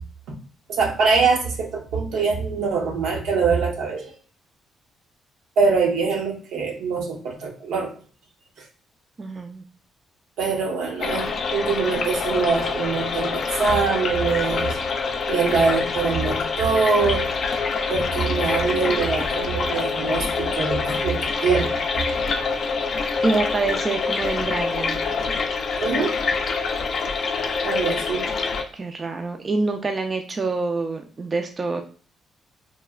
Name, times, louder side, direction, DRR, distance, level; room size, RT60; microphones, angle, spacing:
voice 1, 0.7-4.1 5.6-7.9 10.4-14.8 15.3-17.3 17.9-21.9 25.8-26.2 27.6-28.2, right 5 dB, 80° right, 1 dB, 0.7 m, -23 dB
voice 2, 9.2-9.6 22.8-22.9 23.2-25.0 28.7-31.8, right 3 dB, 35° right, 5 dB, 0.3 m, -26 dB
sound 1, 11.0-28.6, left 4 dB, 55° left, 0.4 m, -25 dB
3.0 x 2.0 x 2.3 m, 0.43 s
cardioid pair, 90°, 0 cm